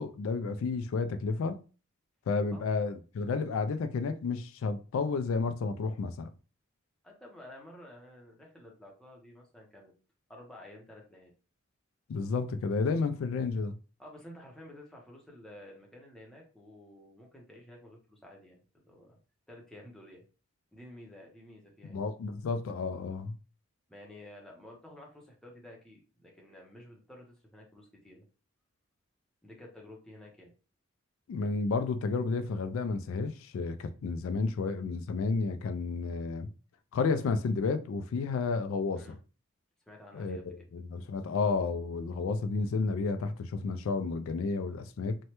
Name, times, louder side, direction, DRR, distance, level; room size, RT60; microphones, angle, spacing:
voice 1, 0.0-1.6 2.3-6.3 12.1-13.7 21.9-23.4 31.3-36.5 36.9-39.2 40.1-45.2, left 4 dB, 80° left, 0.3 m, -31 dB
voice 2, 7.0-9.9 10.3-11.3 14.0-19.2 19.5-20.2 20.7-22.0 23.9-28.3 29.4-30.5 39.0-39.2 39.9-40.7, left 1 dB, 5° left, 0.7 m, -51 dB
3.1 x 2.2 x 2.9 m
head